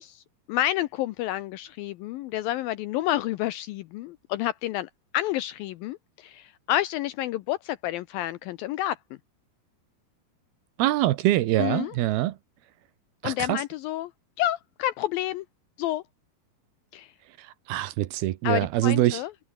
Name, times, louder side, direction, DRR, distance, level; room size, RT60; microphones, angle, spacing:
voice 1, 0.0-9.0 11.6-11.9 13.2-14.1 14.4-15.5 15.8-16.0 16.9-17.1 18.4-19.3, left 14 dB, 80° left, 2.1 m, -29 dB
voice 2, 10.8-12.4 13.2-13.6 17.4-19.2, right 15 dB, 75° right, 2.8 m, -24 dB
omnidirectional pair, 4.8 m